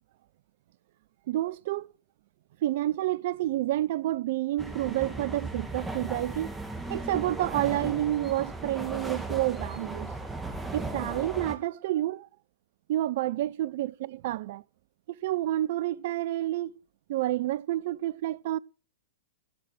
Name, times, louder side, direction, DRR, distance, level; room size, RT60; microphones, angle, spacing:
voice 1, 1.3-1.9 2.6-6.5 6.9-10.1 10.7-12.3 12.9-14.6 15.1-16.8 17.1-18.6, right 14 dB, 55° right, 0.5 m, -29 dB
sound 1, 4.6-11.5, right 2 dB, 5° right, 2.1 m, -36 dB
13.5 x 7.4 x 7.9 m
figure-of-eight pair, 105°, 0 cm